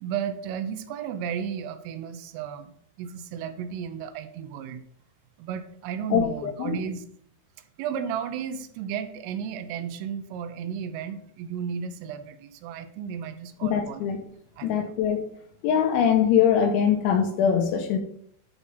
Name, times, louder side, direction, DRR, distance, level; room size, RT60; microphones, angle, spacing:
voice 1, 0.0-4.8 5.4-7.0 7.8-14.1 14.6-14.9, right 8 dB, 85° right, 9 dB, 3.3 m, -34 dB
voice 2, 6.1-6.8 13.6-14.2 14.6-15.2 15.6-18.0, left 8 dB, 80° left, 6 dB, 3.0 m, -22 dB
10.5 x 4.1 x 5.4 m, 0.66 s
omnidirectional pair, 5.8 m